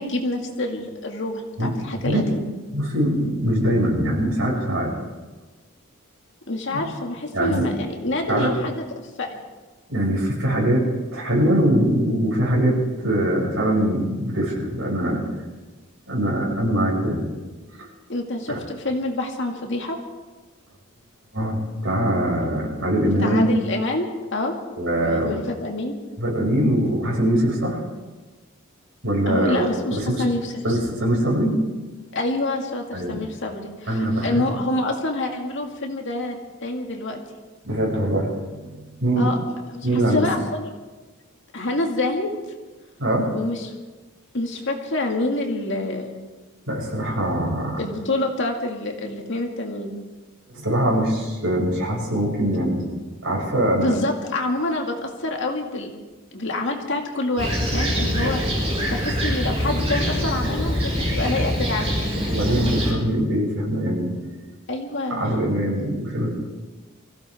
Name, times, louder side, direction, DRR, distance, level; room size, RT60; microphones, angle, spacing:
voice 1, 0.0-2.5 6.5-9.4 18.1-20.0 23.2-24.1 24.3-24.5 25.0-26.0 29.3-30.6 32.1-36.4 36.6-37.2 39.2-39.4 39.7-40.7 41.5-42.3 43.3-43.7 44.3-46.1 47.8-50.0 53.8-55.9 56.3-62.0 64.7-65.2, left 2 dB, 55° left, 2 dB, 2.1 m, -27 dB
voice 2, 2.7-4.9 6.7-6.8 7.3-7.7 8.3-8.5 9.9-15.2 16.1-17.2 17.8-17.9 18.5-18.6 21.3-23.4 24.8-25.4 26.2-27.8 29.0-30.3 30.6-31.6 32.9-33.2 33.9-34.4 37.6-39.3 39.8-40.3 43.0-43.3 46.7-47.8 50.5-52.9 53.2-54.0 58.2-58.3 62.3-64.1 65.1-66.3, right 1 dB, 65° right, -3 dB, 6.2 m, -22 dB
Fixed-wing aircraft airplane, 57.4-62.9, equal, 30° right, 4.8 m, -24 dB
24.0 x 16.0 x 3.6 m, 1.3 s
head